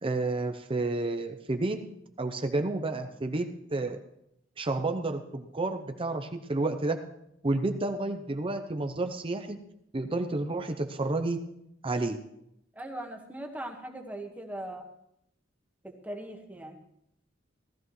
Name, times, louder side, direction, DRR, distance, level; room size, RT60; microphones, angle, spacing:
voice 1, 0.0-1.8 2.2-4.0 4.6-7.0 7.4-9.6 9.9-11.4 11.8-12.2, right 2 dB, 25° right, 6 dB, 0.7 m, -30 dB
voice 2, 12.7-14.9 15.8-16.8, right 1 dB, 10° right, 3 dB, 1.4 m, -40 dB
17.0 x 13.5 x 3.1 m, 0.79 s
head